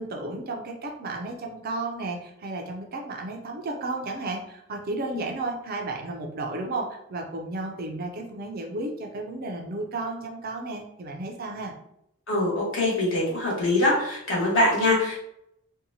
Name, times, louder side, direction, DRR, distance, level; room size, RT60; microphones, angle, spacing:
voice 1, 0.0-11.7, right 2 dB, 45° right, 2 dB, 0.4 m, -33 dB
voice 2, 12.3-15.2, left 2 dB, 60° left, -5 dB, 1.2 m, -23 dB
2.7 x 2.2 x 2.7 m, 0.76 s
head